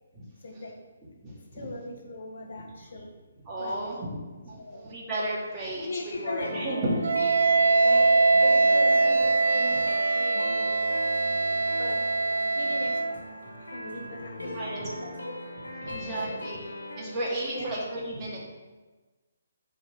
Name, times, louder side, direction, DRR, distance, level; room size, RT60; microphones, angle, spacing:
voice 1, 0.4-0.8 1.5-3.1 3.6-3.9 4.6-4.8 5.7-7.3 7.8-8.1 8.4-11.0 11.8-13.4 13.7-15.3 16.3-16.6 17.5-17.8, left 1 dB, 60° left, 2 dB, 1.1 m, -39 dB
voice 2, 1.2-1.7 3.4-7.0 9.2-9.3 14.5-14.9 15.8-16.6 17.0-18.4, right 1 dB, 20° right, -6 dB, 2.1 m, -33 dB
sound 1, 6.1-17.0, left 1 dB, 85° left, 1.5 m, -39 dB
Wind instrument woodwind instrument, 7.0-13.2, right 3 dB, 75° right, 0.5 m, -23 dB
5.1 x 5.0 x 5.9 m, 1.3 s
figure-of-eight pair, 140°, 0 cm